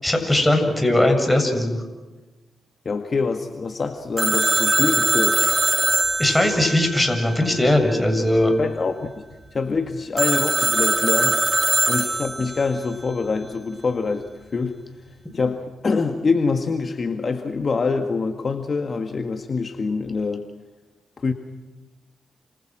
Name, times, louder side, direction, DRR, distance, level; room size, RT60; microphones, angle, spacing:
voice 1, 0.0-1.8 6.2-8.6, left 1 dB, 10° left, 4 dB, 7.6 m, -19 dB
voice 2, 2.9-5.4 8.6-9.2 9.5-11.4 11.9-14.8 15.3-20.5 21.2-21.3, left 4 dB, 50° left, 5 dB, 1.9 m, -25 dB
Telephone, 4.2-7.8 10.2-12.7, right 2 dB, 20° right, 3.4 m, -22 dB
30.0 x 27.5 x 6.3 m, 1.2 s
cardioid pair, 70°, 0 cm